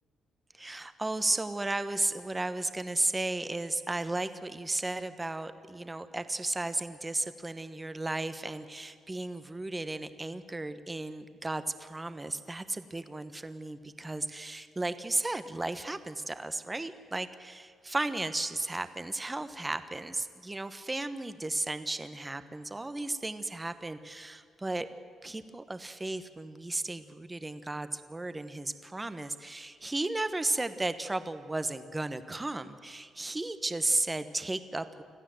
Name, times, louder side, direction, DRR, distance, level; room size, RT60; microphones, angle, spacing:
voice 1, 0.5-24.9 25.2-35.0, right 2 dB, 15° right, 11 dB, 1.1 m, -34 dB
25.5 x 15.0 x 7.8 m, 2.2 s
cardioid pair, 110°, 0 cm